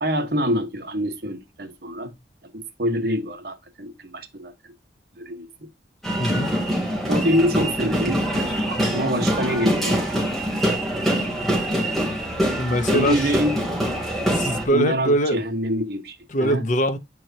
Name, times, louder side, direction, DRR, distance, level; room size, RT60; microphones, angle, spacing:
voice 1, 0.0-2.1 2.5-4.7 5.2-5.5 7.1-10.2 10.8-11.1 12.9-13.6 14.5-16.6, equal, 55° right, 1.4 m, -26 dB
sound 1, 6.0-14.7, equal, ahead, 3.1 m, -24 dB
voice 2, 6.2-6.5 12.6-13.3 14.3-15.4 16.3-17.0, right 1 dB, 40° left, 0.8 m, -22 dB
9.1 x 4.6 x 2.8 m
head